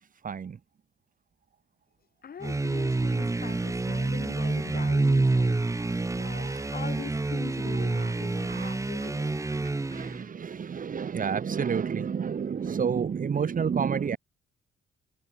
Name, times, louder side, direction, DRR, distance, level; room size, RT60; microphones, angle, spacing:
voice 1, 0.2-0.6 6.1-6.7 7.9-8.1 8.5-8.7 9.5-14.2, right 6 dB, 45° right, 2.0 m, -30 dB
voice 2, 2.2-5.6 6.2-9.4, left 7 dB, 50° left, 7.8 m, -42 dB
sound 1, 2.4-10.2, right 2 dB, 15° right, 1.2 m, -28 dB
cardioid pair, 90°, 20 cm